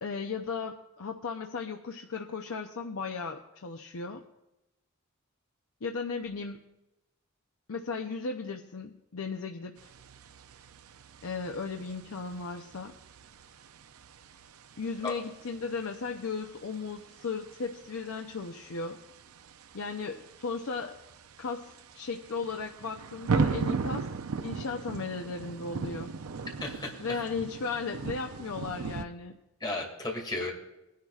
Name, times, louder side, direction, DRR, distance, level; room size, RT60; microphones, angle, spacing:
voice 1, 0.0-4.2 5.8-6.7 7.7-9.8 11.2-13.0 14.8-19.0 19.7-21.0 21.4-24.1 24.4-26.1 27.0-29.3, left 4 dB, 75° left, 3 dB, 0.7 m, -36 dB
sound 1, 9.8-29.0, right 4 dB, 80° right, 0.5 m, -38 dB
voice 2, 26.6-27.2 29.6-30.5, left 2 dB, 20° left, 1 dB, 2.3 m, -34 dB
21.0 x 10.5 x 2.4 m, 0.94 s
head